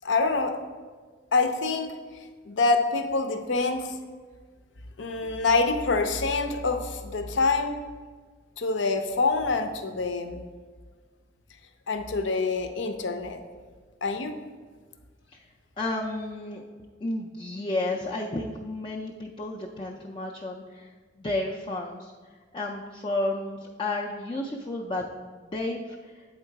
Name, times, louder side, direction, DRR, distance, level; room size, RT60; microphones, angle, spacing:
voice 1, 0.0-0.6 1.3-2.0 2.5-4.0 5.0-7.8 8.6-10.4 11.9-13.4 14.0-14.4, left 3 dB, 80° left, 7 dB, 0.6 m, -26 dB
voice 2, 15.8-16.6 17.0-22.1 22.5-26.3, left 2 dB, 25° left, -2 dB, 0.4 m, -32 dB
8.0 x 3.8 x 4.6 m, 1.5 s
head